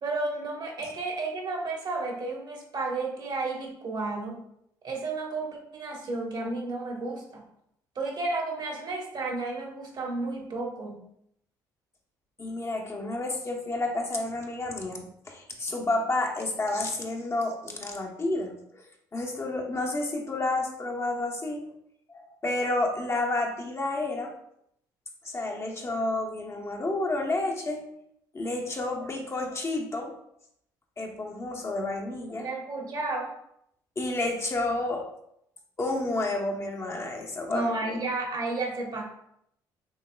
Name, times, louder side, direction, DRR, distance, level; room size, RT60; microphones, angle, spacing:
voice 1, 0.0-4.4 4.8-7.4 7.9-11.0 32.4-33.3 37.5-39.0, right 3 dB, 50° right, 1 dB, 1.3 m, -32 dB
voice 2, 12.4-18.8 19.1-21.7 22.1-24.3 25.2-27.9 28.3-30.1 31.0-32.5 34.0-35.1 35.8-37.9, left 2 dB, 30° left, 1 dB, 0.9 m, -30 dB
6.2 x 2.9 x 2.3 m, 0.74 s
hypercardioid pair, 60°, 10 cm